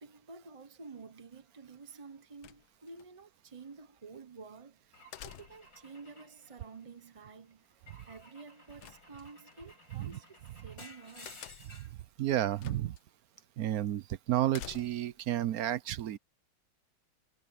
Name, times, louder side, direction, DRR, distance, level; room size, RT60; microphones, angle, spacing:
voice 1, 0.0-11.6, right 4 dB, 30° right, 0.7 m, -51 dB
sound 1, 2.4-3.1 5.1-5.8 8.8-9.6 11.3-11.9 12.6-13.0 13.4-13.5 14.5-15.2, left 12 dB, 80° left, 1.6 m, -49 dB
Car / Engine / Glass, 4.9-7.2 7.9-12.0, left 2 dB, 50° left, 5.4 m, -55 dB
voice 2, 12.2-13.0 13.6-16.2, right 12 dB, 65° right, 0.9 m, -31 dB
omnidirectional pair, 2.1 m